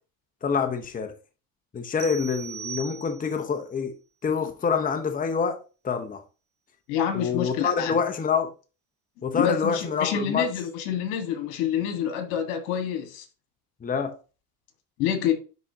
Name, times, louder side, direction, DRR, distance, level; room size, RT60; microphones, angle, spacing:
voice 1, 0.4-1.1 1.7-3.9 4.2-6.2 7.1-8.5 9.2-10.5 13.8-14.1, left 6 dB, 20° left, 0.8 m, -26 dB
sound 1, 2.0-3.5, right 8 dB, 55° right, 0.9 m, -39 dB
voice 2, 6.9-8.0 9.3-13.2 15.0-15.3, left 9 dB, 80° left, 1.7 m, -27 dB
10.5 x 3.7 x 2.8 m
supercardioid pair, 105°, 44 cm